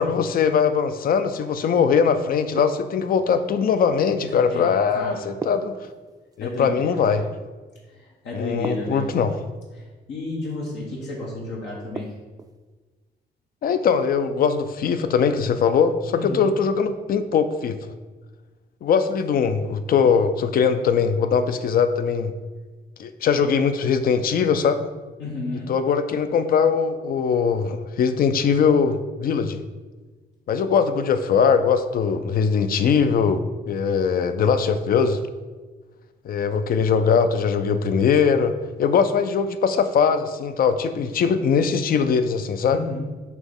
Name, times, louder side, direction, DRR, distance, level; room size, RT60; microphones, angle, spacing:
voice 1, 0.0-5.7 6.4-7.2 8.3-9.4 13.6-17.8 18.8-22.3 23.0-24.9 25.7-29.6 30.5-35.2 36.2-38.5 38.8-42.8, left 6 dB, 55° left, 11 dB, 0.5 m, -21 dB
sound 1, 2.6-3.4 5.4-6.5 8.6-9.4 12.0-12.6, right 4 dB, 20° right, 0.3 m, -36 dB
voice 2, 4.5-5.2 6.4-7.2 7.9-9.0 9.7-12.1 16.2-16.4 25.2-25.7 42.7-43.0, left 2 dB, 85° left, -3 dB, 1.3 m, -32 dB
6.0 x 3.0 x 5.4 m, 1.3 s
cardioid pair, 100°, 18 cm